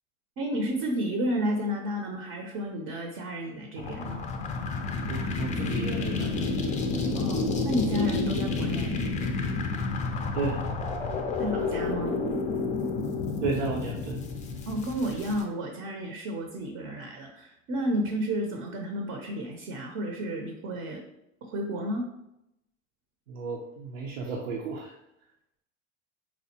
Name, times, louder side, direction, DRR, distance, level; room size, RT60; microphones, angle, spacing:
voice 1, 0.4-4.3 7.1-8.9 11.4-12.2 14.7-21.0 21.4-22.1, equal, 40° right, 3 dB, 0.6 m, -31 dB
sound 1, 3.8-15.4, left 3 dB, 20° left, 0.4 m, -30 dB
voice 2, 5.0-6.5 7.0-7.2 10.3-10.6 13.4-14.2 23.3-24.9, right 4 dB, 80° right, 0 dB, 0.7 m, -33 dB
4.3 x 2.3 x 2.8 m, 0.84 s
hypercardioid pair, 100°, 38 cm